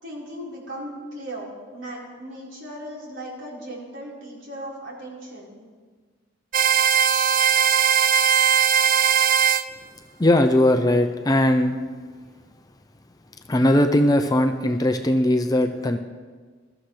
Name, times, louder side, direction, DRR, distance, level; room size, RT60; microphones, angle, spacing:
voice 1, 0.0-5.6, right 1 dB, 75° right, -5 dB, 4.3 m, -37 dB
sound 1, 6.5-9.6, right 8 dB, 45° right, 0.4 m, -19 dB
voice 2, 10.2-11.8 13.5-16.0, left 1 dB, 20° left, 6 dB, 0.5 m, -19 dB
21.0 x 13.0 x 3.3 m, 1.5 s
head